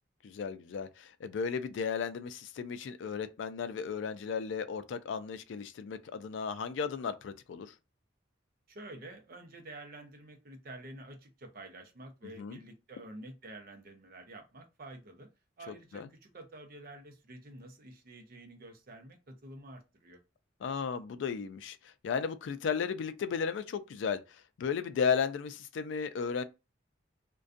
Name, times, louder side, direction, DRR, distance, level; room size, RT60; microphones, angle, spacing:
voice 1, 0.2-7.7 12.4-12.6 15.7-16.1 20.6-26.4, left 6 dB, 70° left, 0.3 m, -35 dB
voice 2, 8.7-15.3 15.6-20.2, right 2 dB, 50° right, 0.6 m, -49 dB
2.5 x 2.2 x 2.4 m
head